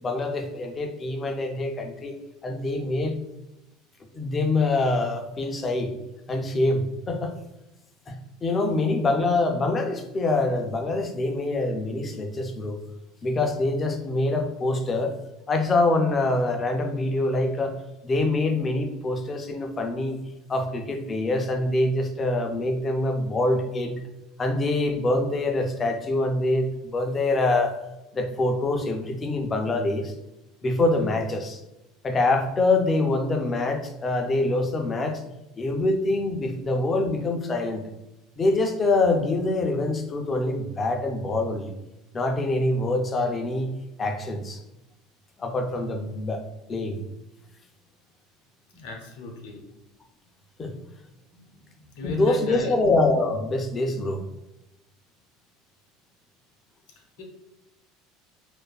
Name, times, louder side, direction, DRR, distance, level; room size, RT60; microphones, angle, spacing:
voice 1, 0.0-2.1 2.4-3.2 4.1-5.9 6.3-7.3 8.1-12.8 13.2-15.2 15.5-17.8 18.0-20.2 20.5-24.0 24.4-27.8 28.1-30.1 30.6-31.6 32.0-35.2 35.6-37.8 38.4-41.7 42.1-44.6 45.4-46.4 46.7-47.0 50.6-50.7 52.0-54.2, left 2 dB, 20° left, 4 dB, 0.3 m, -25 dB
voice 2, 48.7-49.6 51.3-51.5 51.8-52.7 57.0-57.2, left 1 dB, 85° left, 2 dB, 0.6 m, -36 dB
2.5 x 2.2 x 2.3 m, 0.94 s
cardioid pair, 135°, 0 cm